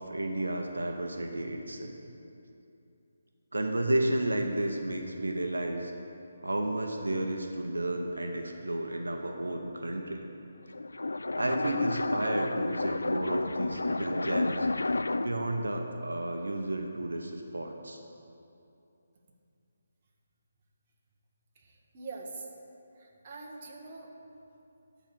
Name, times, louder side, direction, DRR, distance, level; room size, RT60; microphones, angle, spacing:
voice 1, 0.0-1.9 3.5-5.9 6.4-10.2 11.4-14.7 15.2-18.0, right 1 dB, 90° right, 3 dB, 0.8 m, -32 dB
sound 1, 10.6-15.5, left 2 dB, 85° left, 0.3 m, -31 dB
voice 2, 21.5-22.5 23.0-24.1, right 3 dB, 35° right, -1 dB, 1.4 m, -44 dB
11.5 x 4.0 x 7.4 m, 2.7 s
figure-of-eight pair, 155°, 0 cm